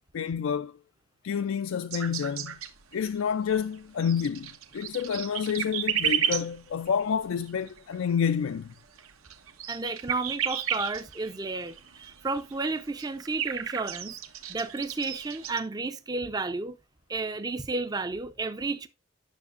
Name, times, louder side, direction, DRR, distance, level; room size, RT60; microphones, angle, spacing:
voice 1, 0.1-0.7 1.2-2.6 2.9-8.7, left 7 dB, 75° left, 0.4 m, -29 dB
sound 1, 1.9-3.2 3.5-15.6, right 9 dB, 85° right, 1.1 m, -33 dB
voice 2, 9.7-14.2 14.5-16.8 17.1-18.9, right 3 dB, 20° right, 0.4 m, -32 dB
9.4 x 6.7 x 2.5 m
head